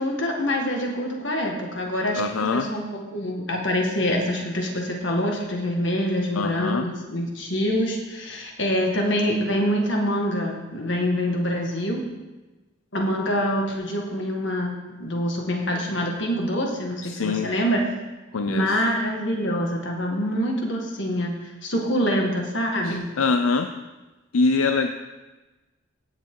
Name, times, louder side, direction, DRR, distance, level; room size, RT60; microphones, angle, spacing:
voice 1, 0.0-12.0 12.9-17.8 18.5-23.1, equal, 60° left, 1 dB, 1.9 m, -25 dB
voice 2, 2.2-2.7 6.4-6.9 17.0-17.5 18.3-18.8 22.8-23.7 24.3-24.9, left 4 dB, 80° left, 7 dB, 0.5 m, -24 dB
17.0 x 7.2 x 3.8 m, 1.2 s
head